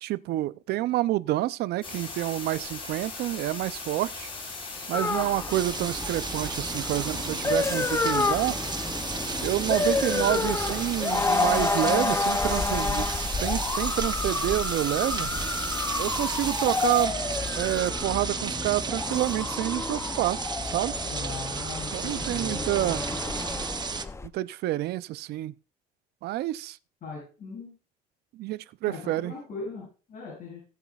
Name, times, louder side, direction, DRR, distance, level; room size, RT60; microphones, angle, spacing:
voice 1, 0.0-4.3 4.9-8.6 9.4-15.3 16.0-17.2 17.6-20.4 20.7-20.9 21.9-23.0 24.3-25.5 26.2-26.8 28.4-29.3, right 15 dB, 75° right, 0.5 m, -28 dB
sound 1, 1.8-17.1, left 3 dB, 30° left, 6.1 m, -39 dB
sound 2, 4.9-24.3, left 3 dB, 15° left, 0.5 m, -30 dB
sound 3, 5.5-24.1, right 5 dB, 25° right, 0.8 m, -34 dB
voice 2, 21.1-23.2 27.0-27.7 28.8-30.6, left 4 dB, 55° left, 7.5 m, -39 dB
21.0 x 8.2 x 2.4 m
cardioid pair, 110°, 17 cm